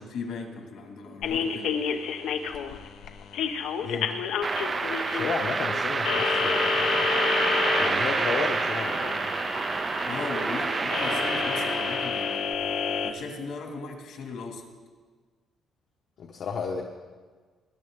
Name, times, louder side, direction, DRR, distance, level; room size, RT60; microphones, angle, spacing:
voice 1, 0.0-1.8 10.1-12.7 13.0-14.7, left 4 dB, 70° left, 2 dB, 2.1 m, -37 dB
sound 1, 1.2-13.1, left 6 dB, 85° left, 0.9 m, -30 dB
voice 2, 3.8-4.1 5.1-7.1 7.8-9.3 16.2-16.8, left 5 dB, 50° left, 0 dB, 1.0 m, -32 dB
sound 2, 4.4-12.5, right 4 dB, 25° right, 0.4 m, -28 dB
20.5 x 10.5 x 3.7 m, 1.4 s
cardioid pair, 175°, 0 cm